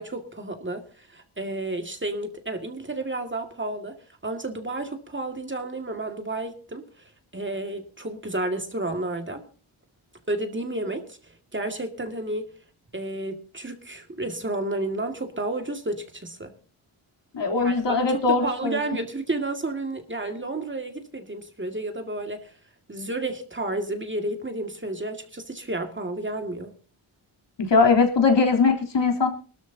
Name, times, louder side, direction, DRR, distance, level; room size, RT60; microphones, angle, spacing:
voice 1, 0.0-4.0 4.2-9.4 10.3-12.5 12.9-16.5 17.6-22.5 22.9-26.7, right 2 dB, 25° right, 2.1 m, -31 dB
voice 2, 17.3-18.8 27.7-29.3, left 4 dB, 60° left, 3.4 m, -20 dB
23.0 x 13.0 x 2.8 m
cardioid pair, 85°, 49 cm